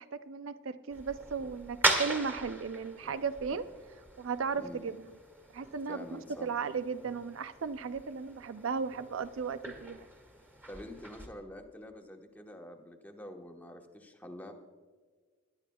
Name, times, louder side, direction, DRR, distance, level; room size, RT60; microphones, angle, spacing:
voice 1, 0.0-3.7 4.2-5.0 5.5-10.1, right 5 dB, 75° right, 12 dB, 0.5 m, -36 dB
sound 1, 0.9-11.3, right 2 dB, 10° right, 1.8 m, -38 dB
voice 2, 5.9-6.5 10.6-14.5, left 1 dB, 10° left, 3 dB, 1.1 m, -47 dB
22.0 x 11.5 x 2.3 m, 1.5 s
head